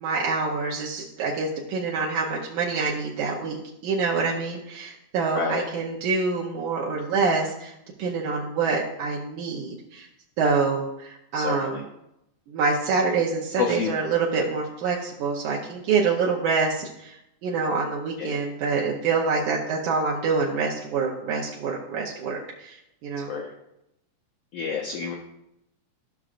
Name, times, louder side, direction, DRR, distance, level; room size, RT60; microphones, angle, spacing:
voice 1, 0.0-3.6 3.8-10.1 10.4-11.9 12.5-23.3, right 4 dB, 75° right, -3 dB, 2.2 m, -26 dB
voice 2, 11.3-11.8 13.6-13.9 18.2-18.4 23.3-23.5 24.5-25.1, left 6 dB, 85° left, 1 dB, 1.4 m, -29 dB
13.0 x 6.1 x 2.5 m, 0.85 s
omnidirectional pair, 3.7 m